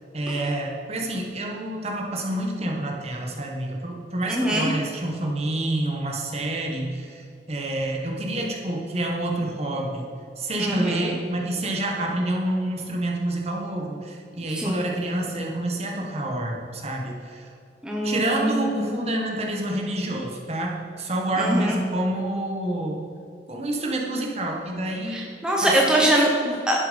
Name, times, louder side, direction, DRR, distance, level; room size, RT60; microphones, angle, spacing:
voice 1, 0.1-7.2 7.5-10.1 10.4-17.5 18.0-23.0 23.5-25.2 25.6-26.1, right 1 dB, 35° right, 0 dB, 1.5 m, -28 dB
voice 2, 4.3-4.7 10.6-11.1 14.5-14.9 17.8-18.8 21.4-21.8 25.1-26.8, right 1 dB, 5° right, -2 dB, 1.1 m, -23 dB
11.5 x 7.4 x 5.3 m, 2.4 s
head